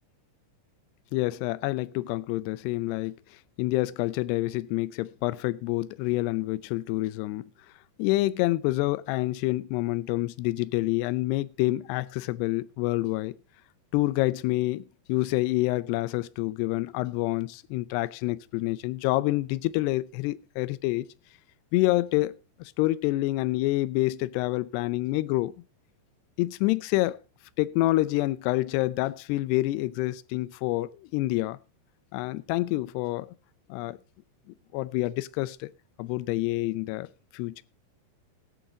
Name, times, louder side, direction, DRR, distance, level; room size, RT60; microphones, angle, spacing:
voice 1, 1.1-3.2 3.6-7.5 8.0-13.4 13.9-21.1 21.7-22.4 22.8-25.5 26.4-27.2 27.6-31.6 32.1-33.3 33.7-34.0 34.7-35.7 36.0-37.1 37.3-37.6, left 18 dB, 80° left, 2.6 m, -27 dB
21.0 x 8.8 x 2.8 m
omnidirectional pair, 5.1 m